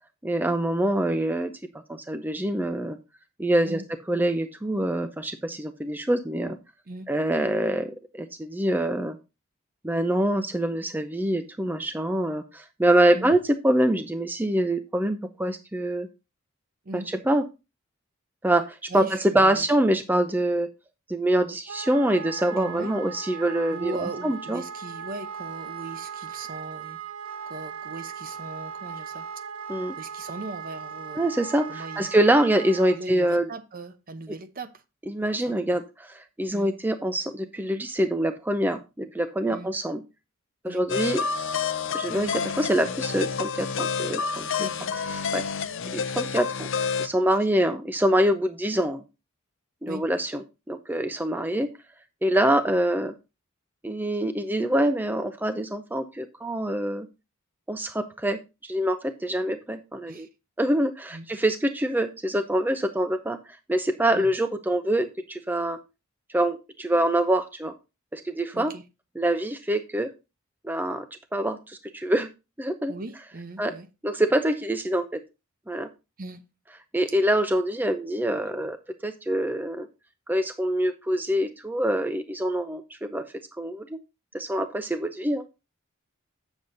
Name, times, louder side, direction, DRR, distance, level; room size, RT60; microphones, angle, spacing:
voice 1, 0.2-1.5 1.9-3.0 3.4-3.8 4.1-6.6 7.1-9.2 9.8-16.1 16.9-17.4 18.4-20.7 21.1-24.6 29.7-29.9 31.2-33.5 35.1-40.0 40.6-41.2 41.9-44.5 45.3-45.4 45.9-46.7 47.0-49.0 49.8-51.7 52.2-53.1 53.8-57.1 57.7-60.3 60.6-63.4 63.7-65.8 66.3-67.7 68.1-68.7 69.2-70.1 70.6-71.0 71.3-72.3 72.6-72.9 73.6-73.7 74.0-75.2 75.7-75.9 76.9-78.8 79.0-79.9 80.3-83.2 83.6-84.0 84.3-85.4, right 1 dB, 10° right, 0.5 m, -25 dB
voice 2, 18.9-19.7 22.5-22.9 23.7-27.0 27.5-29.3 30.0-31.3 31.7-32.1 32.9-34.8 35.4-35.8 36.5-36.7 39.5-39.7 40.7-40.8 44.6-44.9 49.9-50.0 60.1-60.3 61.1-61.2 64.1-64.3 68.5-68.8 72.9-73.9 76.2-76.4, right 2 dB, 45° right, 0.8 m, -38 dB
Wind instrument woodwind instrument, 21.7-33.0, right 6 dB, 85° right, 1.4 m, -38 dB
sound 1, 40.9-47.1, left 6 dB, 60° left, 0.6 m, -29 dB
7.9 x 7.1 x 3.9 m
head